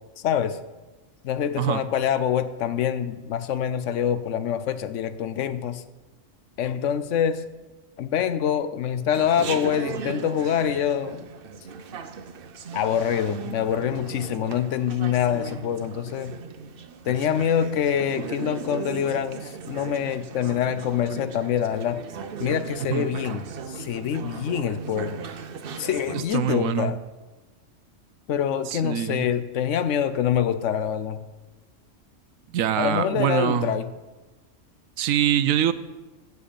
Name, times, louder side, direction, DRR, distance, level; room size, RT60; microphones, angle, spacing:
voice 1, 0.2-0.6 1.2-5.8 6.6-7.5 8.0-11.3 12.7-16.3 17.0-22.0 22.4-25.2 25.8-27.0 28.3-31.2 32.8-33.9, left 9 dB, 70° left, 13 dB, 0.9 m, -25 dB
Chatter, 9.1-26.2, right 5 dB, 50° right, 0.8 m, -37 dB
voice 2, 26.3-26.9 28.7-29.3 32.5-33.7 35.0-35.7, right 11 dB, 80° right, 13 dB, 1.0 m, -24 dB
15.5 x 7.1 x 5.2 m, 1.2 s
omnidirectional pair, 1.4 m